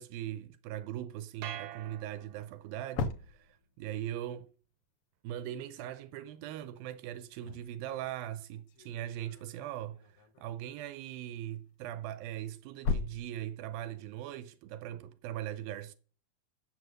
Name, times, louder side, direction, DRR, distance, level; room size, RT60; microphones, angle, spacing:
voice 1, 0.0-3.5 3.8-4.5 5.2-15.9, right 12 dB, 85° right, 2.6 m, -40 dB
sound 1, 1.4-2.8, right 11 dB, 70° right, 2.5 m, -44 dB
sound 2, 1.9-2.0 2.5-4.2 7.0-10.7 11.8-14.0, left 4 dB, 85° left, 1.2 m, -39 dB
14.5 x 7.3 x 6.6 m
omnidirectional pair, 4.1 m